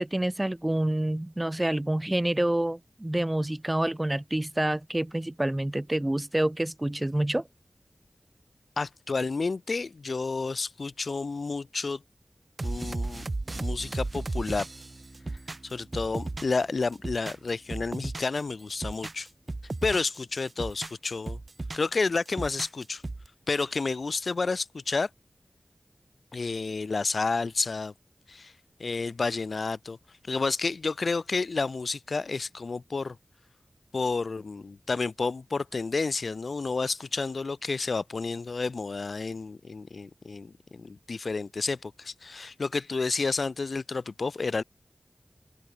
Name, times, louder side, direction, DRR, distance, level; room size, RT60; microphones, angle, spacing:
voice 1, 0.0-7.4, right 1 dB, 20° right, 0.8 m, -27 dB
voice 2, 8.8-12.0 12.6-13.2 13.6-14.7 15.6-19.3 19.8-21.4 21.7-23.0 23.5-25.1 26.3-27.9 28.3-28.5 28.8-30.0 30.3-33.2 33.9-44.6, left 4 dB, 75° left, 0.9 m, -30 dB
sound 1, 12.6-16.6 16.9-18.4 18.7-20.2 20.5-21.9 22.3-23.3, right 2 dB, 45° right, 0.4 m, -35 dB
open air
wide cardioid pair, 85°, 0 cm